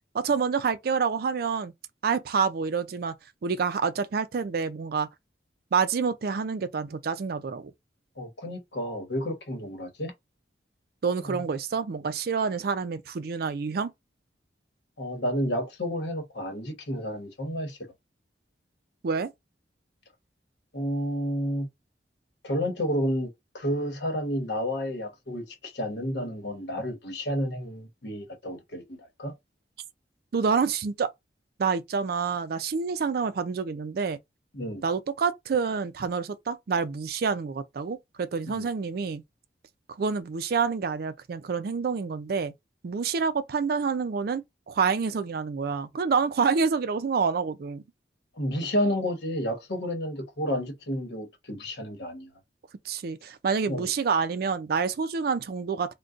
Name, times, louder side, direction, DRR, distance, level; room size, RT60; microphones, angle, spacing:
voice 1, 0.1-1.7 2.0-3.1 3.4-5.1 5.7-7.7 11.0-13.9 19.0-19.3 30.3-31.1 31.6-34.2 34.8-39.2 40.0-42.5 42.8-44.4 44.7-47.8 52.9-55.9, right 5 dB, 55° right, 0.4 m, -27 dB
voice 2, 8.2-10.1 11.2-11.4 15.0-17.8 20.7-21.7 22.4-23.3 23.5-29.3 34.5-34.8 38.5-38.7 48.4-52.3 53.7-53.9, equal, 70° left, 1.1 m, -31 dB
3.8 x 2.2 x 2.4 m
head